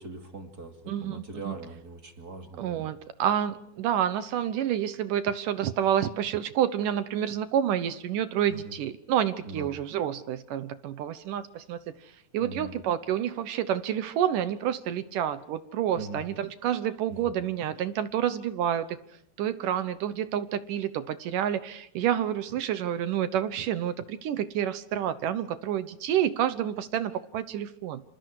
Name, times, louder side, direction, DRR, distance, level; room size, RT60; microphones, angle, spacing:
voice 1, 0.0-2.9 8.5-8.7 9.5-9.7 12.4-12.7 15.9-16.2 17.2-17.3, right 3 dB, 30° right, 5 dB, 2.5 m, -41 dB
voice 2, 0.9-1.6 2.6-19.0 19.4-28.0, right 10 dB, 70° right, 13 dB, 2.4 m, -29 dB
27.5 x 27.0 x 4.8 m, 0.75 s
omnidirectional pair, 4.3 m